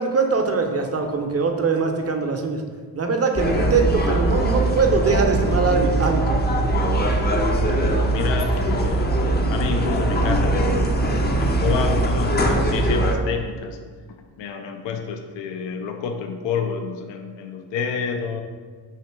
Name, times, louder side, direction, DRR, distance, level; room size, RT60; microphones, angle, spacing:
voice 1, 0.0-2.6 2.9-6.4, right 4 dB, 30° right, 3 dB, 0.6 m, -22 dB
sound 1, 3.3-13.2, right 1 dB, 20° left, 0.5 m, -21 dB
voice 2, 7.7-9.1 9.5-11.0 11.4-13.8 14.2-18.4, left 6 dB, 70° left, 4 dB, 0.5 m, -29 dB
3.1 x 2.8 x 4.5 m, 1.5 s
supercardioid pair, 45°, 46 cm